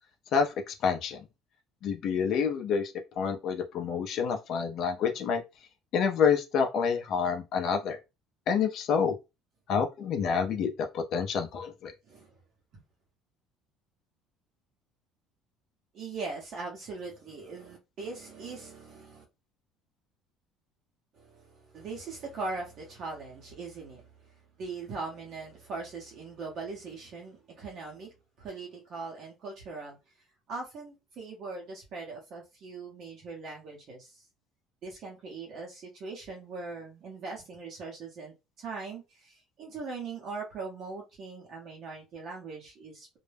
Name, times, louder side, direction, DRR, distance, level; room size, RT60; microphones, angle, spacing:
voice 1, 0.3-1.2 1.8-5.4 5.9-8.0 8.5-9.1 9.7-11.9, left 6 dB, 50° left, 0.4 m, -28 dB
voice 2, 12.1-12.4 12.7-12.8 15.9-19.2 21.1-30.0 30.5-34.2 34.8-43.2, right 4 dB, 45° right, 0.7 m, -41 dB
2.2 x 2.0 x 3.2 m
cardioid pair, 150°, 0 cm